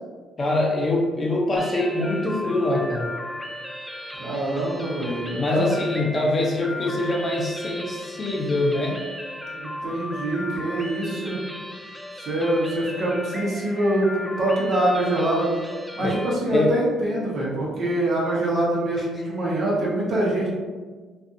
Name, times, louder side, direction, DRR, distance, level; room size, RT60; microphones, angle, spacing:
voice 1, 0.4-3.1 5.4-9.0 16.0-16.2 16.5-16.7, left 2 dB, 35° left, -2 dB, 0.7 m, -24 dB
sound 1, 1.6-16.3, left 1 dB, ahead, 0.3 m, -36 dB
voice 2, 4.2-5.7 9.5-11.4 12.2-15.5 16.0-20.5, right 1 dB, 60° right, -5 dB, 0.9 m, -24 dB
2.6 x 2.4 x 2.6 m, 1.4 s
supercardioid pair, 65°, 0 cm